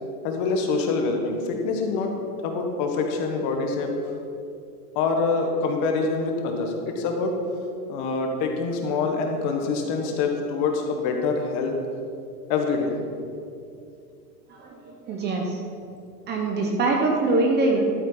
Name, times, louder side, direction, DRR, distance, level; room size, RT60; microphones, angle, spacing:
voice 1, 0.2-3.9 4.9-7.3 7.9-11.7 12.5-12.9, left 4 dB, 40° left, 3 dB, 1.5 m, -25 dB
voice 2, 14.5-15.6 16.3-17.8, right 2 dB, 20° right, 1 dB, 0.8 m, -23 dB
12.0 x 8.8 x 4.0 m, 2.5 s
supercardioid pair, 145°, 47 cm